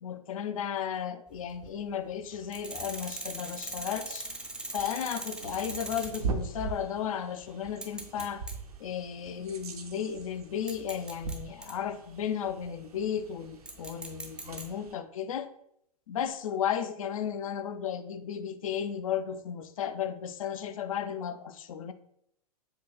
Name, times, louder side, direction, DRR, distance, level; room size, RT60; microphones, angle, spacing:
voice 1, 0.0-4.3 4.7-8.4 8.8-15.5 16.1-21.9, left 8 dB, 55° left, 11 dB, 0.5 m, -34 dB
sound 1, 1.3-1.7 2.5-6.4 6.7-6.8 7.7-8.6 9.1-9.3 10.2-10.3 10.7-11.7 13.7-14.6, right 2 dB, 5° right, 0.5 m, -40 dB
sound 2, 2.3-14.9, right 4 dB, 70° right, 0.7 m, -42 dB
7.2 x 2.8 x 2.3 m, 0.72 s
figure-of-eight pair, 105°, 20 cm